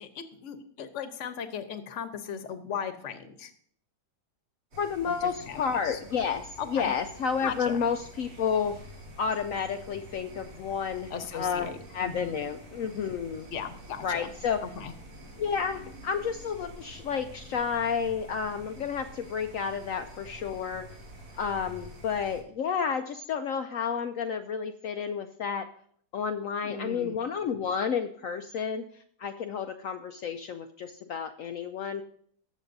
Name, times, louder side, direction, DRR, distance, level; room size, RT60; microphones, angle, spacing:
voice 1, 0.0-3.5 5.1-6.0 6.6-6.9 7.4-7.8 11.1-12.4 13.5-14.3 14.6-14.9 26.6-27.2, left 7 dB, 50° left, 8 dB, 1.1 m, -37 dB
sound 1, 4.7-22.4, equal, 65° right, 3.4 m, -48 dB
voice 2, 4.8-8.8 9.2-13.5 14.0-14.6 15.4-20.9 21.4-25.7 26.1-28.8 29.2-32.0, left 6 dB, 75° left, 8 dB, 0.7 m, -31 dB
20.0 x 7.3 x 2.7 m, 0.62 s
omnidirectional pair, 1.9 m